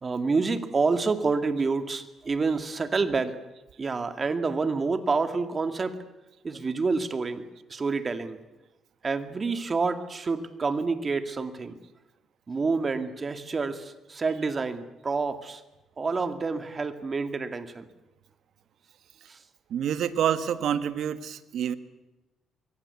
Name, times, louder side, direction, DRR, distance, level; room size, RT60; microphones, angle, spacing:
voice 1, 0.0-3.4 3.8-6.0 6.4-8.4 9.0-11.8 12.5-15.6 16.0-17.9 19.3-19.4, right 4 dB, 35° right, 9 dB, 2.3 m, -28 dB
voice 2, 19.7-21.7, right 9 dB, 70° right, 12 dB, 1.5 m, -27 dB
24.0 x 22.5 x 8.4 m, 0.99 s
cardioid pair, 90°, 0 cm